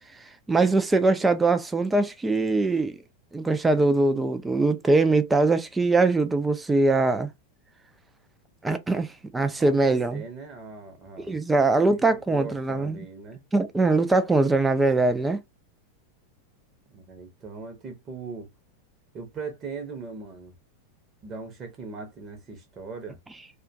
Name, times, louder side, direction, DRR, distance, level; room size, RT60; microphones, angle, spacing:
voice 1, 0.2-3.0 3.3-7.3 8.6-10.2 11.3-13.1 13.5-15.4, right 3 dB, 10° right, 0.4 m, -22 dB
voice 2, 9.5-11.4 11.8-13.4 16.9-18.5 19.1-20.5 21.2-23.2, right 4 dB, 30° right, 0.8 m, -40 dB
2.5 x 2.2 x 2.5 m
figure-of-eight pair, 90°, 0 cm